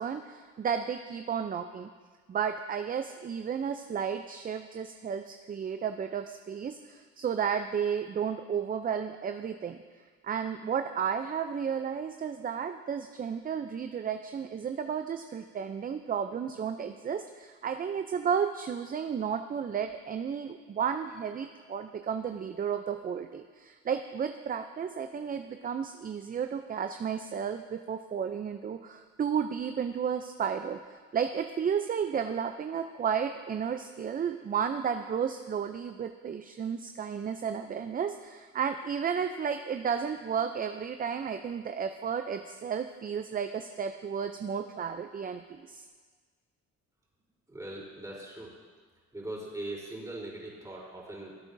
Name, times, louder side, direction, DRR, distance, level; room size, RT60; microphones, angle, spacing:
voice 1, 0.0-1.9 2.3-9.8 10.2-30.8 31.1-45.9, right 7 dB, 30° right, 7 dB, 0.4 m, -33 dB
voice 2, 47.5-48.6 49.1-51.4, right 1 dB, 10° right, -5 dB, 3.5 m, -40 dB
17.5 x 8.3 x 2.6 m, 1.5 s
cardioid pair, 90°, 30 cm